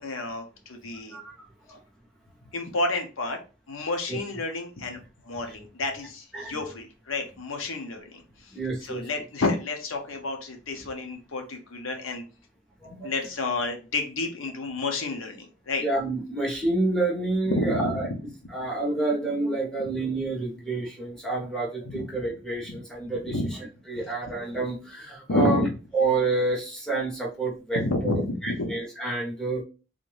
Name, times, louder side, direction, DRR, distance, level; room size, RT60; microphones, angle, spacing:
voice 1, 0.0-1.2 2.5-3.4 3.7-12.2 13.0-15.8 17.5-18.1 21.8-22.0 23.3-23.5 25.3-25.7 27.7-28.7, left 2 dB, 80° left, 4 dB, 0.8 m, -30 dB
voice 2, 1.1-1.8 4.1-4.2 6.3-6.6 8.5-9.0 12.8-13.1 15.8-18.1 18.5-25.6 25.9-29.6, right 3 dB, 5° left, -4 dB, 1.1 m, -29 dB
3.6 x 2.6 x 3.2 m, 0.33 s
head